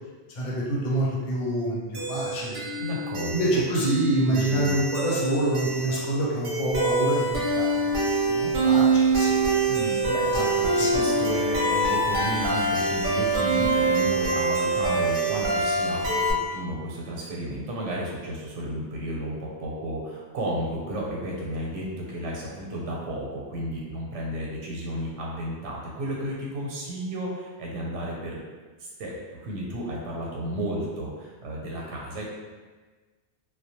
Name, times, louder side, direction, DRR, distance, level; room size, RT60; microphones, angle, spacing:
voice 1, 0.3-2.6 3.3-9.6 10.8-10.9, equal, 85° left, -4 dB, 1.0 m, -27 dB
sound 1, 1.9-16.3, right 2 dB, 55° right, 0.6 m, -25 dB
voice 2, 2.8-3.6 4.2-4.7 9.7-28.4 28.8-32.2, right 1 dB, 85° right, -3 dB, 0.9 m, -33 dB
2.2 x 2.1 x 2.8 m, 1.4 s
omnidirectional pair, 1.2 m